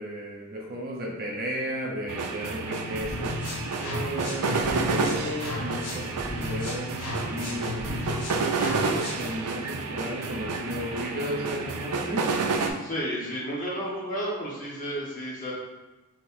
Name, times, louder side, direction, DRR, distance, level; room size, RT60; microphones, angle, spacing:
voice 1, 0.0-7.8 8.7-12.3, equal, 45° right, -3 dB, 0.8 m, -34 dB
sound 1, 2.1-12.7, right 4 dB, 85° right, 0.5 m, -30 dB
sound 2, 3.0-9.3, left 2 dB, 75° left, 0.9 m, -34 dB
voice 2, 12.8-15.5, equal, 35° left, -7 dB, 1.5 m, -32 dB
4.6 x 3.8 x 2.7 m, 1.1 s
head